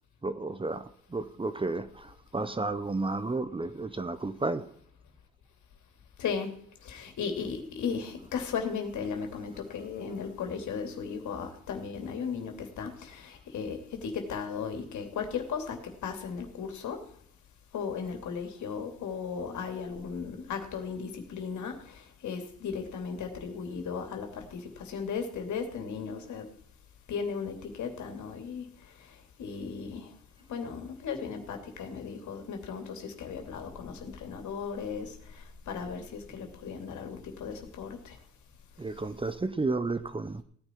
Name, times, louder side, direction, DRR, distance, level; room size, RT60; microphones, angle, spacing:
voice 1, 0.2-4.7 38.8-40.4, right 3 dB, 15° right, 0.8 m, -32 dB
voice 2, 6.8-17.0 17.7-26.5 27.1-28.7 29.4-30.1 30.5-38.2, left 6 dB, 70° left, 3.0 m, -36 dB
17.0 x 9.8 x 4.6 m
cardioid pair, 90°, 30 cm